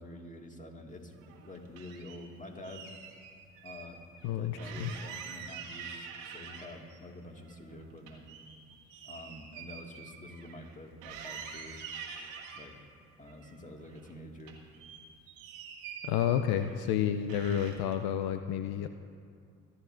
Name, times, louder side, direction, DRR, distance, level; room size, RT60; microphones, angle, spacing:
voice 1, 0.0-2.9 3.6-8.3 9.0-11.8 12.6-12.7 13.2-14.6, left 1 dB, 20° left, 2 dB, 2.0 m, -47 dB
sound 1, 1.1-2.2 2.6-3.9 4.2-4.3 4.6-7.0 7.3-10.8 11.0-12.7 13.3-14.1 14.4-16.9 17.3-18.0, right 6 dB, 85° right, 1.5 m, -46 dB
voice 2, 4.2-4.9 16.0-18.9, left 9 dB, 70° left, 8 dB, 0.6 m, -30 dB
24.5 x 11.0 x 2.6 m, 2.3 s
hypercardioid pair, 45°, 38 cm